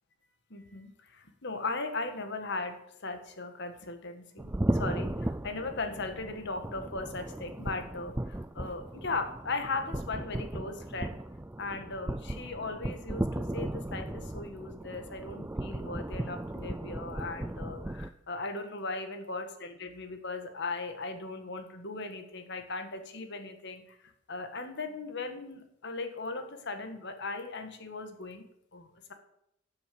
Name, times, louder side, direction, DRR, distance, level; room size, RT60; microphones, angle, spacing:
voice 1, 0.5-11.2 11.6-24.0 24.3-28.4 28.7-29.1, left 3 dB, 60° left, 7 dB, 1.7 m, -38 dB
sound 1, 4.4-18.1, right 1 dB, 10° right, 0.4 m, -36 dB
12.0 x 7.3 x 8.4 m, 0.79 s
head